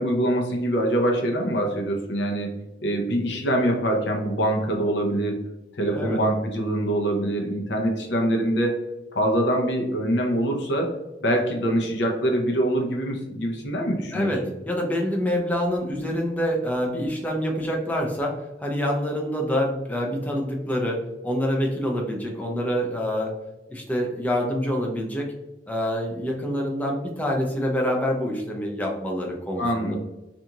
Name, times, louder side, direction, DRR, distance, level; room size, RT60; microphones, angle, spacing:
voice 1, 0.0-5.4 5.8-8.8 9.1-10.9 11.2-14.3 29.6-29.9, right 1 dB, 80° left, 1 dB, 0.6 m, -24 dB
voice 2, 14.1-23.3 23.7-25.3 25.7-29.9, equal, 10° left, 0 dB, 0.4 m, -26 dB
2.5 x 2.3 x 2.8 m, 0.97 s
head